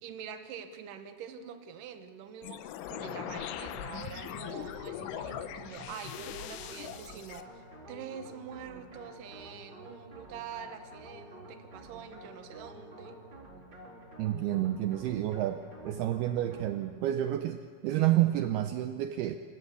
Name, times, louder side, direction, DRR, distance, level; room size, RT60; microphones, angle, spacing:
voice 1, 0.0-7.6 7.9-13.2, right 7 dB, 65° right, 8 dB, 2.3 m, -45 dB
sound 1, 2.4-7.4, left 11 dB, 90° left, 3.5 m, -40 dB
sound 2, 3.8-17.0, right 1 dB, 25° right, 4.1 m, -50 dB
voice 2, 14.2-19.4, right 13 dB, 80° right, 8 dB, 2.3 m, -29 dB
27.0 x 25.0 x 7.1 m, 2.2 s
omnidirectional pair, 5.4 m